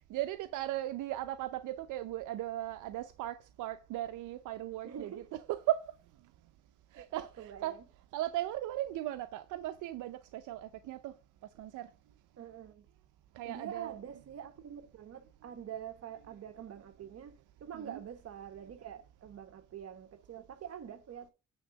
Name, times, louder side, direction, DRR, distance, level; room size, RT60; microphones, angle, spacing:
voice 1, 0.1-5.1 5.5-5.8 6.9-7.8 8.1-11.1 11.6-11.9 13.4-14.0 17.7-18.0, right 14 dB, 85° right, 0.6 m, -37 dB
voice 2, 4.8-5.3 6.9-7.1 7.4-7.9 12.4-12.9 13.4-17.3 17.6-21.3, right 8 dB, 55° right, 1.2 m, -46 dB
8.9 x 3.6 x 6.1 m
cardioid pair, 90°, 30 cm